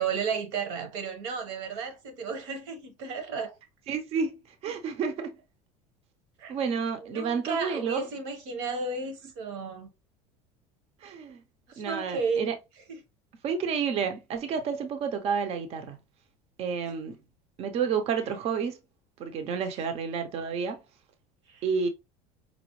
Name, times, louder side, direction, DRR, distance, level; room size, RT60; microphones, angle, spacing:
voice 1, 0.0-3.6 6.4-6.6 7.0-9.9 11.7-12.5 12.9-13.0 16.8-17.0 21.5-21.6, right 5 dB, 80° right, 1.3 m, -33 dB
voice 2, 3.9-5.3 6.5-8.1 11.0-11.4 11.8-12.6 13.4-16.0 16.6-17.2 17.6-18.8 19.2-20.8 21.6-21.9, right 6 dB, 45° right, 0.7 m, -30 dB
5.1 x 2.1 x 3.1 m
supercardioid pair, 125°, 15 cm